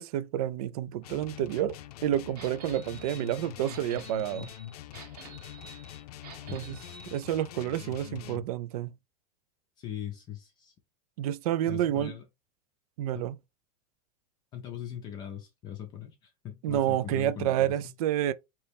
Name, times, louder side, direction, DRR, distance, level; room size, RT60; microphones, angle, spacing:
voice 1, 0.0-4.5 6.5-6.8 7.1-8.9 11.2-12.2 13.0-13.4 16.6-18.3, right 12 dB, 70° right, 0.4 m, -29 dB
sound 1, 1.0-8.5, left 13 dB, 75° left, 0.5 m, -44 dB
sound 2, 2.4-7.2, right 5 dB, 85° right, 1.3 m, -49 dB
voice 2, 9.8-10.7 11.7-12.2 13.1-13.3 14.5-17.9, left 10 dB, 20° left, 0.5 m, -40 dB
4.2 x 2.9 x 3.4 m
supercardioid pair, 170°, 20 cm